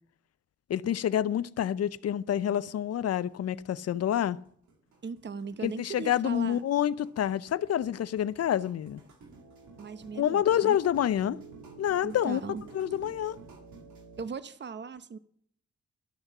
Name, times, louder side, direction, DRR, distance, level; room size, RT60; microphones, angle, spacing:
voice 1, 0.7-4.4 5.6-9.0 10.1-11.4 11.8-12.4 12.7-13.4, left 10 dB, 55° left, 0.6 m, -28 dB
sound 1, 2.2-2.3 2.6-2.7 3.1-14.2, right 4 dB, 75° right, 2.0 m, -51 dB
voice 2, 5.0-6.6 9.8-10.8 12.0-12.6 14.2-15.2, right 5 dB, 40° right, 0.8 m, -38 dB
12.0 x 6.4 x 7.2 m
supercardioid pair, 40°, 29 cm